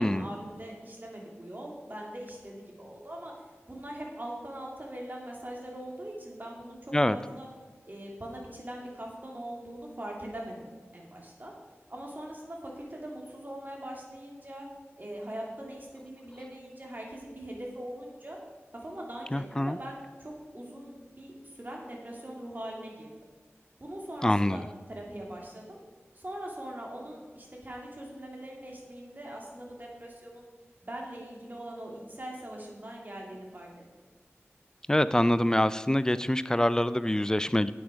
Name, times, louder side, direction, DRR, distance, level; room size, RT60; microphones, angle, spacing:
voice 1, 0.0-7.5 7.9-11.5 11.9-14.7 15.0-18.4 18.7-23.1 23.8-25.8 26.1-30.5 30.8-33.7, right 1 dB, 40° right, -1 dB, 2.7 m, -42 dB
voice 2, 19.3-19.8 24.2-24.6 34.9-37.7, left 1 dB, 15° left, 15 dB, 0.4 m, -25 dB
9.8 x 8.1 x 5.2 m, 1.4 s
wide cardioid pair, 55°, 5 cm